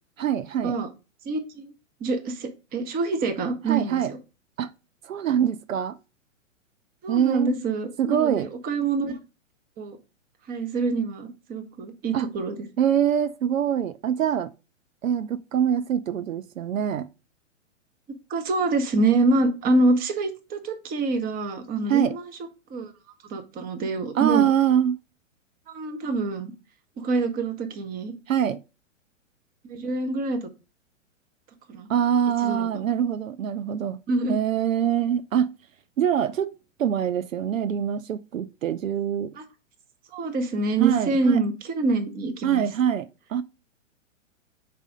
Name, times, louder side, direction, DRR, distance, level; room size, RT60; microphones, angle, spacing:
voice 1, 0.2-0.8 3.7-4.1 4.6-4.7 5.0-6.0 7.1-7.5 8.0-8.5 12.1-12.3 12.8-14.5 15.0-17.1 21.9-22.1 24.2-25.0 28.3-28.6 31.9-34.0 34.3-35.5 36.0-36.5 36.8-39.4 40.8-41.4 42.4-43.4, right 9 dB, 80° right, 0.6 m, -24 dB
voice 2, 1.2-1.7 2.0-4.2 7.0-9.2 9.8-10.0 10.5-12.6 18.3-22.3 22.7-22.9 23.3-24.5 25.7-26.5 27.0-28.1 29.6-30.5 31.7-31.9 32.4-32.7 34.1-34.4 39.4-39.5 40.1-42.7, right 3 dB, 25° right, 1.0 m, -26 dB
4.7 x 4.2 x 4.9 m
hypercardioid pair, 120°, 39 cm